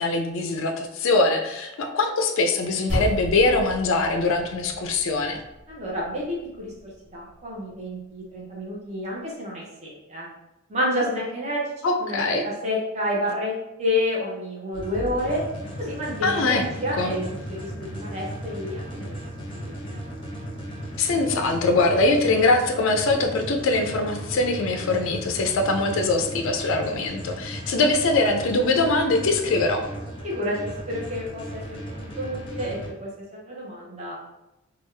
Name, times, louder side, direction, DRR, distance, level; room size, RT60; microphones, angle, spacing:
voice 1, 0.0-5.4 11.8-12.4 16.2-16.7 16.9-17.2 21.0-29.8, left 2 dB, 60° left, 4 dB, 0.4 m, -22 dB
sound 1, 2.9-7.4, equal, 55° right, 1.3 m, -34 dB
voice 2, 5.7-10.3 10.7-11.6 12.0-13.5 13.8-15.4 15.8-17.2 17.5-19.2 19.6-20.0 30.2-30.6 30.9-31.8 32.2-34.2, left 1 dB, 30° right, -5 dB, 0.7 m, -29 dB
sound 2, 14.7-32.9, equal, 25° left, 0.6 m, -36 dB
3.4 x 2.3 x 3.2 m, 0.95 s
head